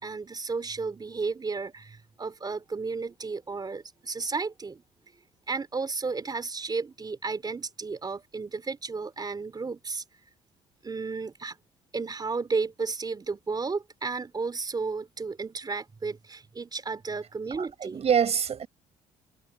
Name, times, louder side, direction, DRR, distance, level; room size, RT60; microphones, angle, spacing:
voice 1, 0.0-4.8 5.5-10.0 10.8-11.6 11.9-18.0, right 4 dB, 30° right, 3.7 m, -33 dB
voice 2, 17.6-18.7, right 7 dB, 50° right, 4.9 m, -25 dB
supercardioid pair, 80°, 14 cm